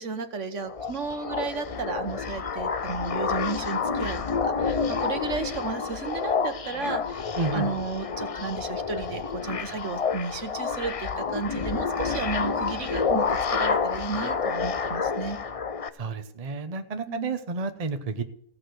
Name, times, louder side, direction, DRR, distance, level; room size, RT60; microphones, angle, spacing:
voice 1, 0.0-7.2 7.5-15.4 17.1-17.4, right 4 dB, 60° right, 8 dB, 1.5 m, -33 dB
sound 1, 0.6-15.9, left 5 dB, 45° left, 0.4 m, -29 dB
voice 2, 7.4-7.7 15.9-18.2, right 4 dB, 30° right, 7 dB, 0.9 m, -30 dB
16.0 x 6.7 x 7.8 m, 0.68 s
omnidirectional pair, 1.5 m